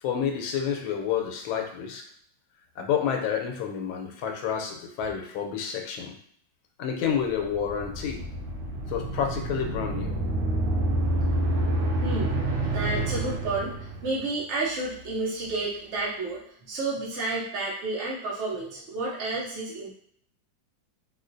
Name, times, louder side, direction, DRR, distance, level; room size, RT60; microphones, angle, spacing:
voice 1, 0.0-2.0 2.8-6.1 6.8-8.2 8.9-10.1, left 7 dB, 85° left, 3 dB, 1.4 m, -29 dB
sound 1, 7.4-14.2, right 1 dB, 85° right, 1.4 m, -28 dB
voice 2, 11.5-19.9, right 2 dB, 65° right, -6 dB, 0.7 m, -31 dB
3.8 x 2.4 x 2.5 m, 0.66 s
omnidirectional pair, 2.1 m